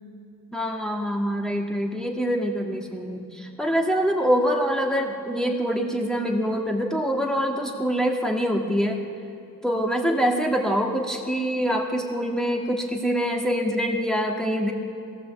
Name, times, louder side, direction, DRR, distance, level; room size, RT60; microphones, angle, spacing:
voice 1, 0.5-9.0 9.6-14.7, equal, ahead, 0 dB, 1.7 m, -25 dB
20.5 x 16.5 x 7.6 m, 2.7 s
wide cardioid pair, 75°, 34 cm